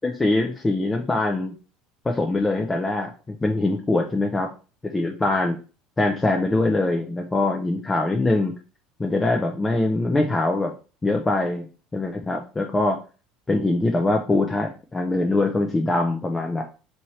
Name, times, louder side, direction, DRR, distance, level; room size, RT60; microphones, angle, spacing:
voice 1, 0.0-1.5 2.0-4.5 4.8-5.6 6.0-8.5 9.0-10.7 11.0-11.7 11.9-13.0 13.5-16.6, left 2 dB, 15° left, 2 dB, 0.5 m, -23 dB
4.4 x 2.8 x 3.1 m, 0.36 s
supercardioid pair, 105°, 0 cm